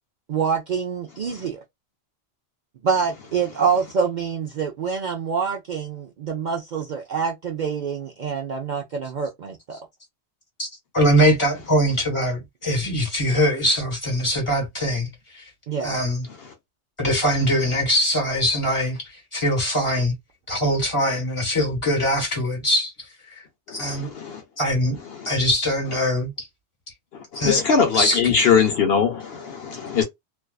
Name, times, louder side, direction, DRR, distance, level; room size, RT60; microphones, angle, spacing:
voice 1, 0.3-1.6 2.8-9.8 11.0-11.2 15.7-16.0, right 6 dB, 55° right, 0.5 m, -26 dB
voice 2, 10.9-15.4 15.8-16.3 17.0-19.0 19.3-20.1 20.5-22.9 23.3-23.4 23.7-24.1 24.6-25.0 25.2-26.5 27.3-27.6 27.9-28.3, equal, 25° left, 1.4 m, -22 dB
voice 3, 23.7-24.4 25.2-25.3 27.3-30.0, left 6 dB, 65° left, 0.8 m, -21 dB
2.5 x 2.3 x 2.2 m
omnidirectional pair, 1.2 m